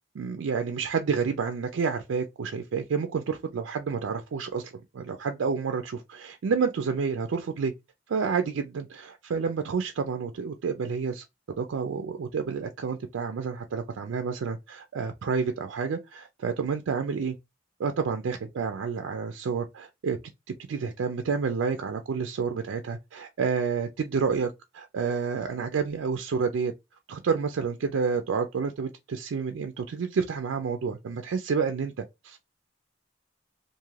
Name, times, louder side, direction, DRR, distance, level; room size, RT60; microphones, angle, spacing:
voice 1, 0.1-7.7 8.1-11.2 11.6-17.4 17.8-20.2 20.7-26.7 27.1-32.4, right 5 dB, 85° right, 0.4 m, -29 dB
2.5 x 2.4 x 3.1 m
head